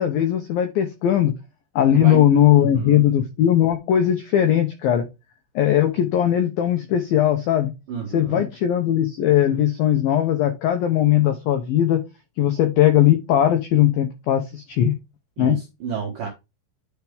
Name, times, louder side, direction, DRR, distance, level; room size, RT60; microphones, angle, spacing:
voice 1, 0.0-1.3 1.8-5.1 5.6-7.7 8.1-12.0 12.4-15.0 15.4-15.6, left 11 dB, 90° left, 2.0 m, -19 dB
voice 2, 1.9-2.3 2.6-3.1 7.9-8.5 15.4-16.3, right 6 dB, 75° right, 2.0 m, -31 dB
9.5 x 4.6 x 3.5 m
omnidirectional pair, 5.5 m